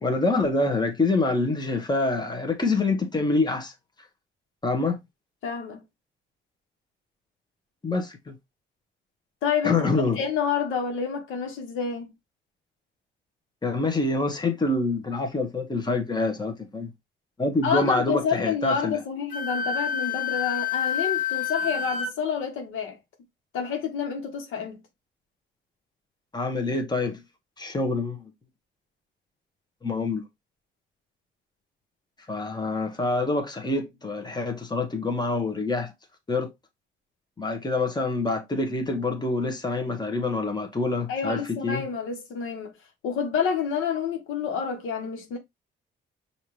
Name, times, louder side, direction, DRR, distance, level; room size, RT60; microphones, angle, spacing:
voice 1, 0.0-3.7 4.6-5.0 7.8-8.3 9.6-10.2 13.6-16.9 17.4-19.0 26.3-27.2 27.6-28.2 29.8-30.2 32.3-35.9 36.3-36.5 37.4-41.8, left 3 dB, 20° left, 1.3 m, -26 dB
voice 2, 5.4-5.8 9.4-9.9 10.2-12.1 17.6-23.0 23.5-24.8 41.1-42.7 43.0-45.4, left 6 dB, 85° left, 1.4 m, -28 dB
Wind instrument woodwind instrument, 19.3-22.1, left 7 dB, 45° left, 1.4 m, -28 dB
5.4 x 2.8 x 3.2 m
cardioid pair, 90°, 20 cm